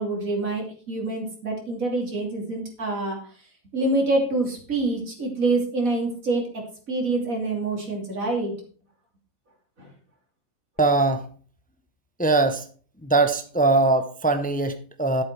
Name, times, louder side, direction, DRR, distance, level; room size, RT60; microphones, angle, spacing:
voice 1, 0.0-3.2 3.7-6.5 6.9-8.5 9.8-9.9, right 2 dB, 75° right, 1 dB, 3.3 m, -26 dB
voice 2, 10.8-11.2 12.2-12.6 13.0-15.2, right 3 dB, 10° left, 8 dB, 0.6 m, -21 dB
11.0 x 7.9 x 4.6 m, 0.43 s
omnidirectional pair, 1.4 m